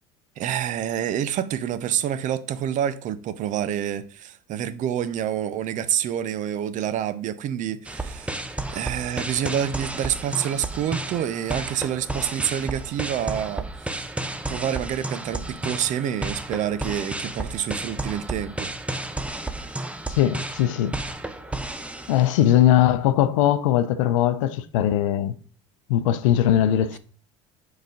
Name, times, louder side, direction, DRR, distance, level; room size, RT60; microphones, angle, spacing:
voice 1, 0.4-8.4 8.7-18.7, right 10 dB, 50° right, 0.6 m, -28 dB
sound 1, 7.9-22.6, right 2 dB, 5° right, 0.7 m, -32 dB
voice 2, 20.1-21.0 22.1-25.4 25.9-27.0, left 11 dB, 85° left, 0.6 m, -20 dB
5.2 x 4.0 x 5.1 m
hypercardioid pair, 85°, 16 cm